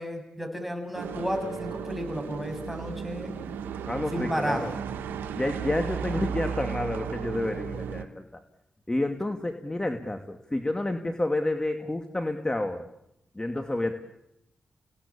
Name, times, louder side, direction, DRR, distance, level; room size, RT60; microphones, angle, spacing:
voice 1, 0.0-3.4 4.1-4.7, equal, 5° right, 6 dB, 7.5 m, -32 dB
sound 1, 0.9-8.0, right 7 dB, 90° right, 1.5 m, -35 dB
voice 2, 3.9-4.7 5.3-8.3 8.9-12.8 13.4-13.9, left 1 dB, 20° left, 6 dB, 2.4 m, -29 dB
29.0 x 18.5 x 8.8 m, 0.86 s
supercardioid pair, 40°, 3 cm